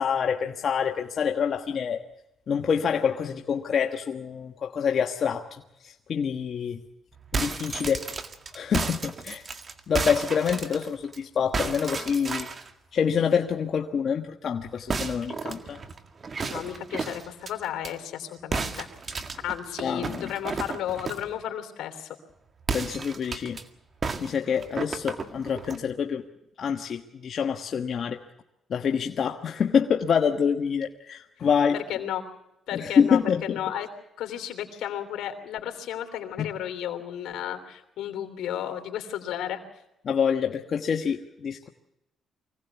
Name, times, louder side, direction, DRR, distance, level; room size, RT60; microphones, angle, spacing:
voice 1, 0.0-2.0 2.5-5.4 5.8-6.8 7.3-8.0 8.5-9.4 9.9-12.5 12.9-15.8 19.8-20.3 22.7-23.6 24.2-26.2 26.6-28.2 28.7-31.8 32.7-33.6 36.4-36.5 40.0-41.7, left 7 dB, 55° left, 4 dB, 1.3 m, -26 dB
sound 1, 7.2-11.2 11.5-12.7 14.9-17.9 18.5-21.3 22.6-23.6 24.0-25.8, right 4 dB, 40° right, 1.9 m, -33 dB
voice 2, 16.4-18.9 19.4-22.2 31.7-32.2 32.7-33.9 34.2-39.6, left 10 dB, 80° left, 7 dB, 3.2 m, -33 dB
25.0 x 17.5 x 8.2 m, 0.90 s
cardioid pair, 90°, 0 cm